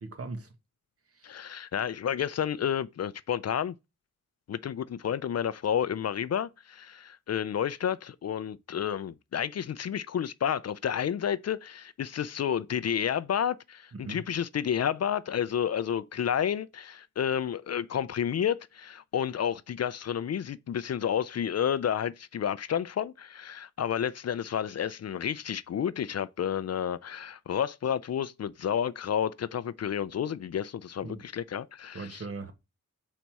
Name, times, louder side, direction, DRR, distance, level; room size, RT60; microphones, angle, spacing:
voice 1, 0.0-0.5 1.1-1.4 13.9-14.2 31.0-31.3 31.9-32.5, right 3 dB, 45° right, 1.4 m, -39 dB
voice 2, 1.2-3.7 4.5-32.2, left 9 dB, 50° left, 0.4 m, -30 dB
7.4 x 4.1 x 4.6 m
wide cardioid pair, 105°, 32 cm